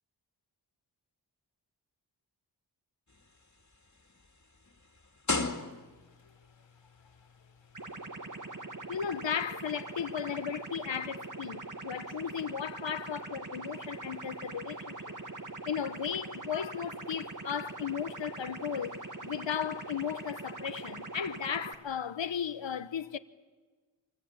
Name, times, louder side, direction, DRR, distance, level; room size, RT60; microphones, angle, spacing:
sound 1, 3.1-6.2 7.1-7.2, left 3 dB, 40° left, 2.3 m, -36 dB
sound 2, 7.7-21.7, right 3 dB, 45° right, 2.2 m, -42 dB
voice 1, 8.9-15.2 15.6-23.2, left 8 dB, 85° left, 1.0 m, -35 dB
24.5 x 23.5 x 8.7 m
cardioid pair, 50°, 44 cm